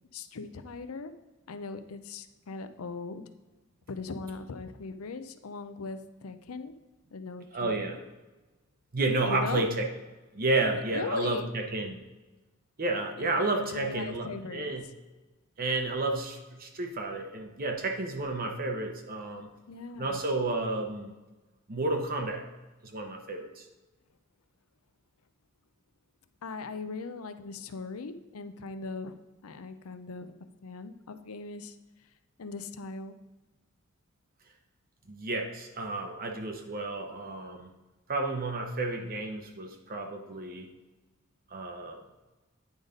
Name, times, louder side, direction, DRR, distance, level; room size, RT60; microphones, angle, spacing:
voice 1, 0.1-1.1 1.5-3.2 3.9-6.7 7.1-7.9 9.2-9.7 10.9-11.5 13.2-13.3 13.7-14.7 19.7-20.2 26.4-30.3 30.6-31.8 32.4-33.1, left 4 dB, 85° left, 10 dB, 0.6 m, -39 dB
voice 2, 7.5-8.0 8.9-9.9 10.3-12.0 12.8-14.8 15.6-19.5 20.0-21.1 21.7-22.5 22.8-23.7 35.1-37.7 38.1-40.7 41.5-42.0, right 2 dB, 45° right, 4 dB, 0.8 m, -31 dB
9.4 x 4.0 x 5.1 m, 1.2 s
head